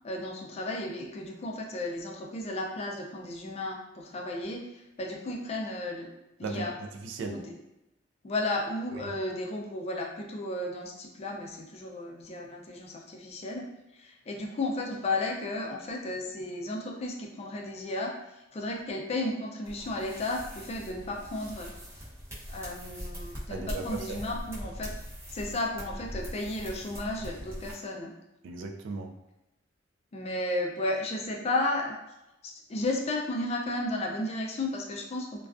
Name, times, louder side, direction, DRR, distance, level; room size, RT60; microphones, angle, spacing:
voice 1, 0.0-6.1 6.4-6.7 7.2-7.5 8.2-13.7 13.9-21.7 22.5-24.9 25.3-28.1 30.1-31.9 32.4-35.5, left 2 dB, 35° left, 0 dB, 0.3 m, -34 dB
voice 2, 6.4-7.4 8.9-9.0 23.5-24.2 28.4-29.1, right 3 dB, 80° right, 4 dB, 0.3 m, -37 dB
sound 1, 19.6-27.7, equal, 15° right, 0.6 m, -41 dB
2.3 x 2.3 x 2.4 m, 0.94 s
head